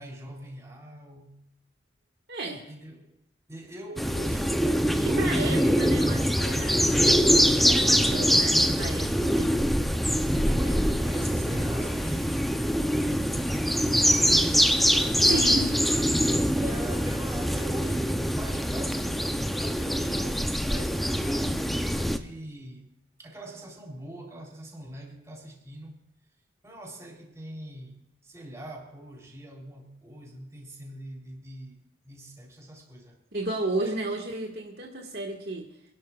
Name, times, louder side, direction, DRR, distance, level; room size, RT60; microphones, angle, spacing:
voice 1, 0.0-1.4 2.7-3.2 3.5-5.5 7.9-8.5 10.3-14.7 16.6-19.2 19.6-22.9 23.2-26.0 26.6-31.8 32.0-33.2 33.8-34.0, right 1 dB, 15° right, 3.4 m, -43 dB
voice 2, 2.3-2.7 5.0-7.0 7.4-9.5 15.1-15.8 33.3-35.7, right 2 dB, 60° right, 1.7 m, -33 dB
sound 1, 4.0-22.2, equal, ahead, 0.6 m, -24 dB
28.0 x 11.5 x 2.4 m
head